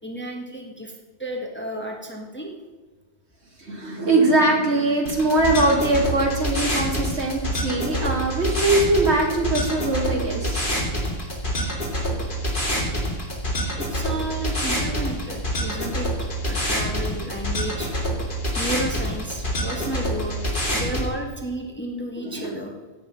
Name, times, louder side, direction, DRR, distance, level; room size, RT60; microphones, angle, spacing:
voice 1, 0.0-2.5 13.8-16.1 16.4-17.9 18.5-20.4 20.7-22.8, right 1 dB, 10° left, 1 dB, 1.6 m, -32 dB
voice 2, 3.6-10.7 22.2-22.5, right 2 dB, 75° right, 0 dB, 2.8 m, -22 dB
sound 1, 5.1-21.1, equal, 45° left, 3.2 m, -26 dB
16.0 x 8.4 x 5.5 m, 1.3 s
omnidirectional pair, 1.2 m